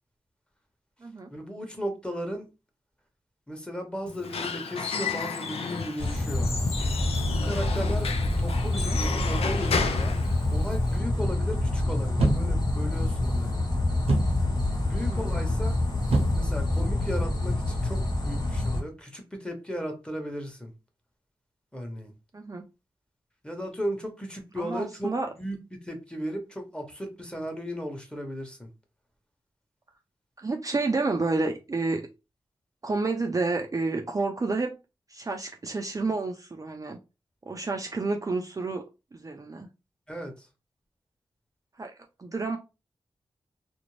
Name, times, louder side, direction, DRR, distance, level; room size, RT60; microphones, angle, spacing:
voice 1, 1.3-2.5 3.5-6.5 7.4-8.1 8.4-10.1 10.5-13.6 14.8-15.8 16.3-20.7 21.7-22.1 23.4-25.6 25.8-28.7 40.1-40.5, equal, 10° left, 1.0 m, -36 dB
Squeak / Wood, 4.1-11.0, left 5 dB, 75° left, 0.4 m, -33 dB
sound 1, 6.0-18.8, left 1 dB, 40° left, 1.1 m, -27 dB
voice 2, 8.6-9.0 15.1-15.3 22.3-22.6 24.6-25.3 30.4-32.1 32.8-34.8 35.1-37.0 37.5-38.8 39.1-39.7 41.8-41.9 42.2-42.6, right 3 dB, 35° right, 0.4 m, -30 dB
sound 2, 12.2-18.3, right 1 dB, 80° right, 0.6 m, -31 dB
2.5 x 2.1 x 3.1 m
cardioid pair, 50°, 10 cm